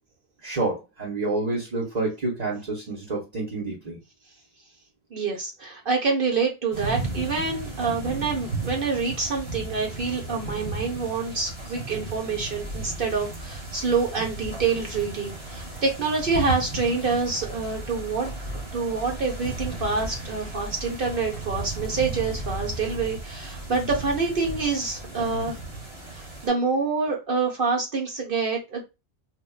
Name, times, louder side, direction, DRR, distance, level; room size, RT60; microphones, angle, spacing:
voice 1, 0.4-4.0 25.2-25.5, right 2 dB, 40° right, -6 dB, 1.2 m, -29 dB
voice 2, 5.1-25.6 26.1-28.8, right 4 dB, 60° right, 0 dB, 1.0 m, -27 dB
sound 1, 6.7-26.5, right 2 dB, 85° right, 2.2 m, -35 dB
4.4 x 2.6 x 2.3 m, 0.25 s
omnidirectional pair, 1.0 m